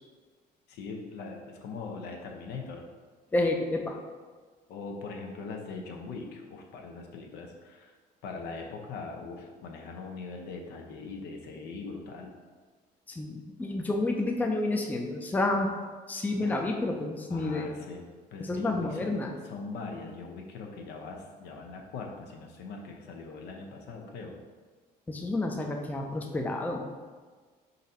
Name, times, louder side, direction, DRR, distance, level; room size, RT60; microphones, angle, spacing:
voice 1, 0.7-2.8 4.7-7.9 8.2-12.3 16.4-16.6 17.3-18.0 18.3-24.4, left 4 dB, 80° left, 1 dB, 0.7 m, -41 dB
voice 2, 3.3-4.0 13.1-15.7 16.1-17.7 18.4-19.3 25.1-26.9, left 2 dB, 10° left, 2 dB, 0.4 m, -30 dB
4.0 x 2.6 x 4.2 m, 1.4 s
cardioid pair, 110°, 17 cm